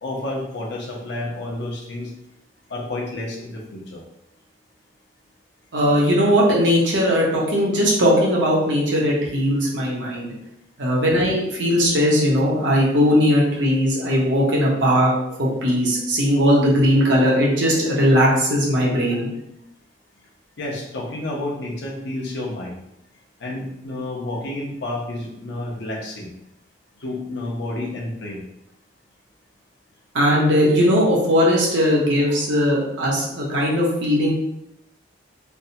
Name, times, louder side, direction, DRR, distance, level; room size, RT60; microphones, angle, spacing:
voice 1, 0.0-2.1 2.7-4.0 20.6-22.8 23.4-26.3 27.0-28.4, left 1 dB, 65° left, -2 dB, 0.7 m, -30 dB
voice 2, 5.7-10.3 10.8-15.1 15.4-19.3 30.1-34.3, equal, 75° right, -3 dB, 0.9 m, -19 dB
3.4 x 2.1 x 2.7 m, 0.80 s
head